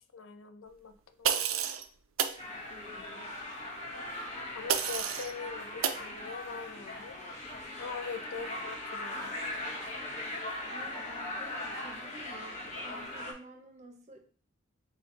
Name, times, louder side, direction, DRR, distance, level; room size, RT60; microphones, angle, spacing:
voice 1, 0.1-1.7 4.5-7.2 7.8-9.5, left 5 dB, 75° left, 8 dB, 0.5 m, -43 dB
sound 1, 1.2-1.8 2.2-2.4 4.7-5.3 5.8-6.0, right 8 dB, 75° right, 0.4 m, -30 dB
sound 2, 2.4-13.3, left 1 dB, 35° left, 1.1 m, -40 dB
voice 2, 2.7-3.4 8.4-8.5 10.7-14.2, right 1 dB, 35° right, 4 dB, 0.8 m, -50 dB
5.0 x 2.3 x 3.8 m, 0.43 s
head